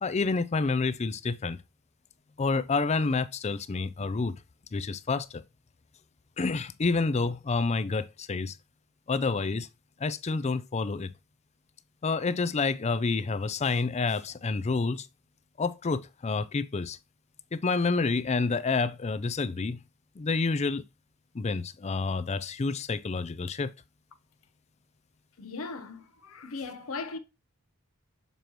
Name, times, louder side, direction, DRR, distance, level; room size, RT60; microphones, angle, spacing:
voice 1, 0.0-1.6 2.4-4.4 4.7-5.4 6.4-8.6 9.1-9.7 10.0-11.1 12.0-15.1 15.6-17.0 17.5-19.8 20.2-20.8 21.3-23.7, left 4 dB, 30° left, 0.4 m, -28 dB
voice 2, 25.4-27.2, left 4 dB, 65° left, 0.7 m, -38 dB
6.8 x 4.6 x 3.0 m
head